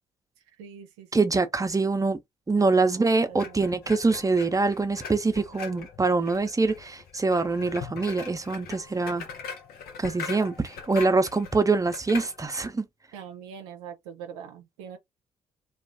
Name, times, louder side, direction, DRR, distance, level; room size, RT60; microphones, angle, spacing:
voice 1, 0.6-1.2 2.7-3.6 8.7-9.2 13.1-15.0, right 7 dB, 85° right, 0.5 m, -44 dB
voice 2, 1.1-2.2 2.5-9.3 10.0-12.8, right 3 dB, 20° right, 0.6 m, -24 dB
sound 1, 3.3-12.7, left 6 dB, 70° left, 0.8 m, -41 dB
2.4 x 2.3 x 3.5 m
hypercardioid pair, 40°, 16 cm